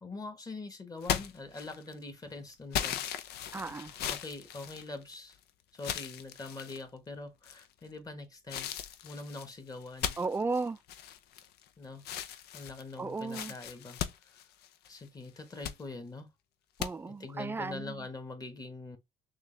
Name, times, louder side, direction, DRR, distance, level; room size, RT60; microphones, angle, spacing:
voice 1, 0.0-3.0 4.0-5.4 5.7-8.7 9.0-10.2 11.8-12.0 12.5-14.0 14.9-16.3 17.1-19.0, left 3 dB, 20° left, 1.3 m, -43 dB
sound 1, 1.0-2.0 2.7-5.3 5.8-6.8 7.4-7.9 8.5-11.7 12.0-15.0 15.4-15.8 16.8-16.9, left 10 dB, 75° left, 0.7 m, -37 dB
voice 2, 3.5-3.9 10.2-10.8 13.0-13.5 16.8-18.1, right 3 dB, 15° right, 0.4 m, -35 dB
6.2 x 2.5 x 3.2 m
cardioid pair, 110°, 17 cm